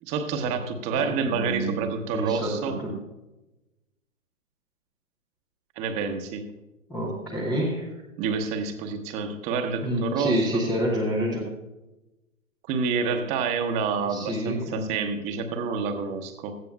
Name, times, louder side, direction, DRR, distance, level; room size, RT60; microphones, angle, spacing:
voice 1, 0.0-2.8 5.8-6.4 8.2-10.6 12.7-16.6, right 5 dB, 15° right, 7 dB, 0.8 m, -28 dB
voice 2, 0.9-2.9 6.9-7.9 9.8-11.4 14.1-14.9, right 1 dB, ahead, -6 dB, 0.4 m, -28 dB
16.5 x 13.5 x 2.3 m, 1.0 s
figure-of-eight pair, 125°, 40 cm